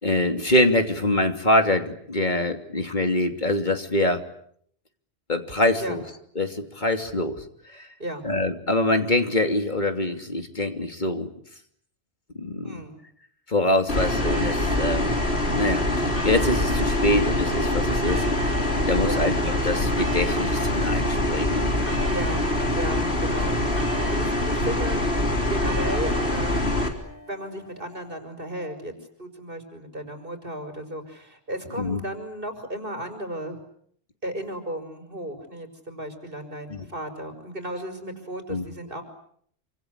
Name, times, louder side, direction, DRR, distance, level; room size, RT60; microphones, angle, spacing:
voice 1, 0.0-4.2 5.3-6.0 6.4-7.4 7.7-7.9 8.2-11.3 12.3-12.7 13.5-18.5 18.9-21.7 31.8-32.0 36.7-36.8 38.5-38.6, left 1 dB, 40° left, 6 dB, 3.1 m, -24 dB
voice 2, 12.6-13.0 13.8-14.1 19.0-19.3 22.0-22.5 22.7-23.6 24.1-25.0 25.5-26.7 27.3-28.9 29.2-33.6 34.2-39.0, right 1 dB, 50° right, 7 dB, 5.8 m, -34 dB
sound 1, 13.9-26.9, left 1 dB, 65° left, 4.3 m, -24 dB
sound 2, 14.2-28.1, left 1 dB, 15° right, 6.6 m, -41 dB
28.0 x 26.0 x 8.3 m, 0.66 s
omnidirectional pair, 1.2 m